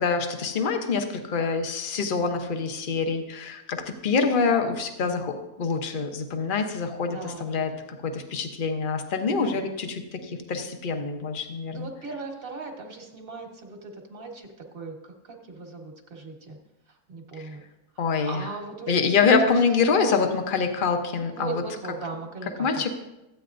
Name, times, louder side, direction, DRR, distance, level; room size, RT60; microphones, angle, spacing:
voice 1, 0.0-3.8 4.0-5.3 5.6-7.7 8.0-11.9 18.0-18.4 18.9-21.6 22.6-22.9, left 5 dB, 40° left, 5 dB, 0.9 m, -25 dB
voice 2, 7.0-7.9 9.2-9.7 11.7-16.6 16.9-17.6 17.9-20.4 21.3-22.9, right 3 dB, 40° right, 2 dB, 1.5 m, -38 dB
14.5 x 8.9 x 2.6 m, 0.97 s
omnidirectional pair, 1.5 m